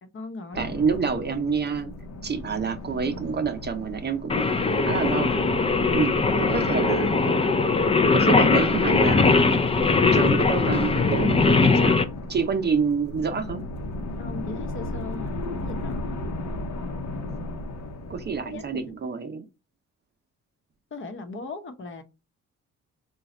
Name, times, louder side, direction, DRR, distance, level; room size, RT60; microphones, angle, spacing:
voice 1, 0.0-0.7 14.2-16.2 18.4-19.0 20.9-22.0, left 3 dB, 40° left, 1.0 m, -38 dB
sound 1, 0.5-19.0, left 2 dB, 65° left, 1.0 m, -35 dB
voice 2, 0.5-1.9 2.2-4.5 4.8-5.4 5.9-7.2 8.1-9.6 10.1-12.0 12.3-13.6 18.1-19.4, right 5 dB, 35° right, 0.7 m, -28 dB
Singing, 4.3-12.0, left 3 dB, 20° left, 0.5 m, -20 dB
3.9 x 2.4 x 4.3 m
cardioid pair, 90°, 30 cm